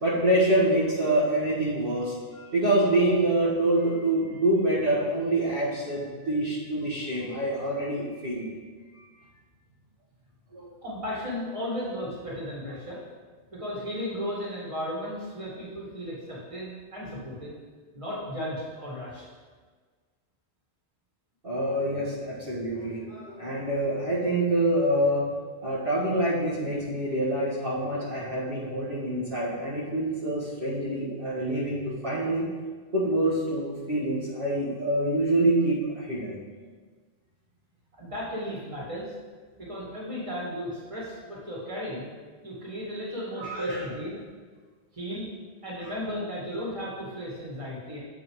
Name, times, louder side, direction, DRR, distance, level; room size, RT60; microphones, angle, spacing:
voice 1, 0.0-8.5 9.0-9.1 10.5-10.7 21.4-25.2 25.6-32.5 32.9-36.4 43.4-43.9, right 1 dB, 55° right, -9 dB, 1.7 m, -26 dB
voice 2, 10.8-13.0 13.5-17.5 17.9-19.2 21.9-22.4 38.0-39.1 39.6-42.1 42.4-44.2 44.9-45.3 45.6-48.0, equal, 30° right, -6 dB, 2.0 m, -35 dB
7.5 x 4.8 x 4.7 m, 1.5 s
omnidirectional pair, 1.1 m